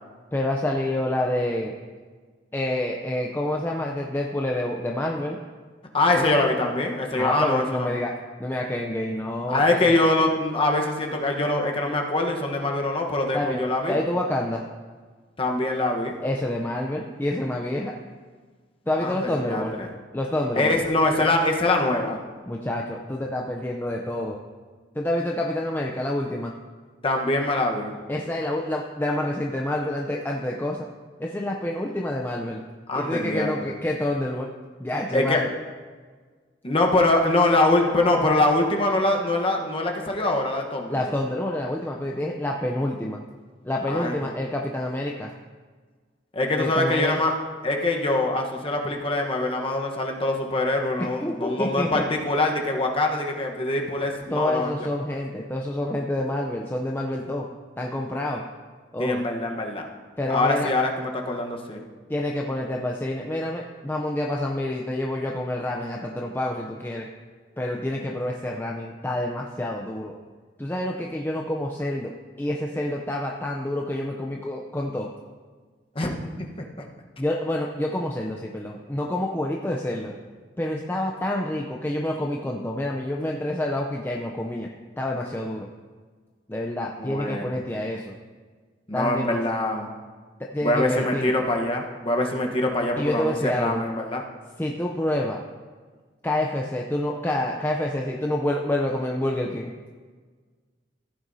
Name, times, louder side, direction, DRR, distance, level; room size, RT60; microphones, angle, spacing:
voice 1, 0.3-1.7 2.5-5.4 6.2-6.3 7.2-8.1 8.4-10.0 13.3-13.6 13.9-14.7 16.2-17.9 18.9-19.7 20.1-20.8 22.5-24.4 24.9-26.5 28.1-30.9 31.2-32.6 32.9-34.5 34.8-35.5 40.9-43.2 43.6-45.3 46.6-47.2 51.2-52.0 54.3-57.5 57.8-58.4 58.9-59.2 60.2-60.7 62.1-67.1 67.6-70.1 70.6-72.1 72.4-75.1 77.2-80.1 80.6-84.7 85.0-85.7 86.5-88.1 88.9-89.4 90.4-91.3 93.0-93.8 94.6-95.4 96.2-99.7, left 1 dB, 10° left, 0 dB, 0.5 m, -28 dB
voice 2, 5.9-7.9 9.5-14.0 15.4-16.2 19.0-19.9 20.5-22.2 27.0-28.0 32.9-33.5 35.1-35.4 36.6-41.0 43.9-44.2 46.3-47.3 47.6-54.9 59.0-59.9 60.3-61.8 75.9-76.5 87.0-87.6 88.9-89.9 90.6-94.2, left 2 dB, 30° left, 1 dB, 1.1 m, -24 dB
15.0 x 9.1 x 2.7 m, 1.5 s
head